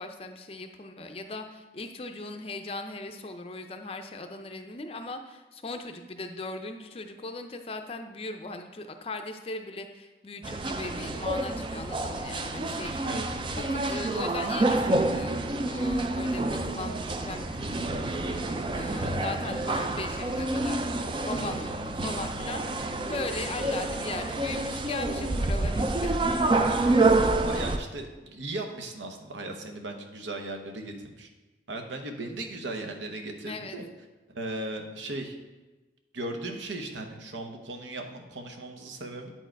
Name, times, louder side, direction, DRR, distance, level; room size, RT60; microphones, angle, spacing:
voice 1, 0.0-13.0 13.5-15.4 15.7-17.8 18.2-26.3 27.5-27.7 33.4-33.8, left 2 dB, 30° left, 6 dB, 0.5 m, -38 dB
sound 1, 10.4-27.8, right 2 dB, 25° right, 0.4 m, -28 dB
voice 2, 26.5-26.9 27.5-31.3 31.7-33.8 34.3-35.4 36.1-39.3, right 2 dB, 75° right, 4 dB, 0.9 m, -37 dB
8.9 x 4.6 x 4.6 m, 1.2 s
head